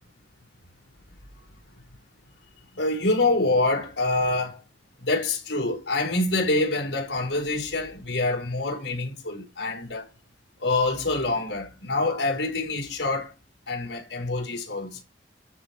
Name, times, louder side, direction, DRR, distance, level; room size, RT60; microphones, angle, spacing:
voice 1, 2.7-4.6 5.0-10.1 10.6-13.3 13.7-15.0, left 2 dB, 80° left, 5.7 m, -26 dB
13.5 x 5.6 x 4.6 m
head